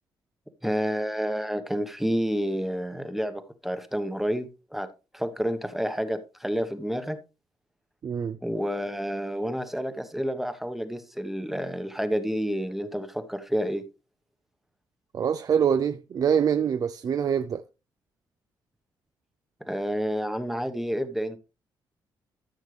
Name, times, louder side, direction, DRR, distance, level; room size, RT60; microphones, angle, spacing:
voice 1, 0.6-7.2 8.4-13.8 19.7-21.4, equal, 5° right, 1.2 m, -29 dB
voice 2, 8.0-8.4 15.1-17.6, right 7 dB, 50° right, 0.5 m, -24 dB
13.0 x 6.4 x 3.3 m
cardioid pair, 90°, 8 cm